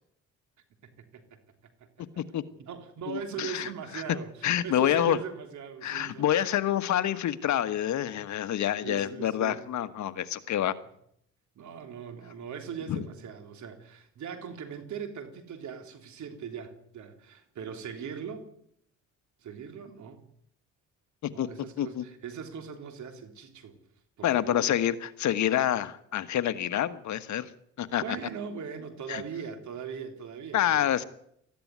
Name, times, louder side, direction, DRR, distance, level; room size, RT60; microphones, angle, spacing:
voice 1, 0.8-1.4 2.6-6.2 8.8-9.6 11.6-18.5 19.4-20.2 21.3-23.8 24.2-24.6 28.0-30.9, right 7 dB, 70° right, 6 dB, 3.5 m, -40 dB
voice 2, 3.1-3.7 3.9-4.0 4.4-5.2 5.8-10.7 12.9-13.0 21.2-21.5 21.8-22.0 24.2-27.5 27.8-28.2 29.1-29.2 30.5-31.0, left 11 dB, 70° left, 12 dB, 1.4 m, -27 dB
19.0 x 14.5 x 9.5 m, 0.72 s
cardioid pair, 90°, 30 cm